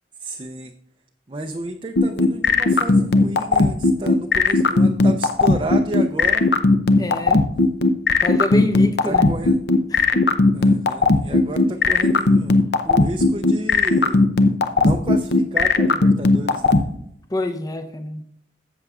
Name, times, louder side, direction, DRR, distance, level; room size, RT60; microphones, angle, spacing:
voice 1, 0.2-0.7 1.3-6.5 9.1-9.5 10.5-12.6 12.8-14.2 14.8-16.8, right 1 dB, 25° right, 0.5 m, -31 dB
sound 1, 2.0-16.8, left 3 dB, 60° left, 0.6 m, -15 dB
voice 2, 7.0-7.4 8.2-9.3 9.9-10.2 17.3-18.2, left 1 dB, 20° left, 0.6 m, -26 dB
13.5 x 7.9 x 2.4 m
head